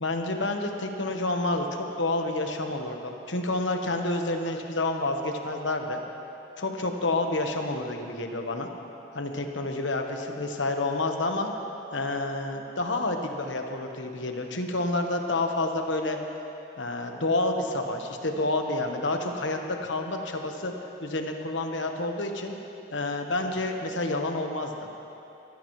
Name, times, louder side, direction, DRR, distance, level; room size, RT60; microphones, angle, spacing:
voice 1, 0.0-6.0 6.6-8.7 9.1-11.5 11.9-16.2 16.8-20.7 21.0-22.5 22.9-24.7, left 2 dB, 75° left, 4 dB, 1.3 m, -29 dB
23.5 x 13.5 x 3.2 m, 2.9 s
head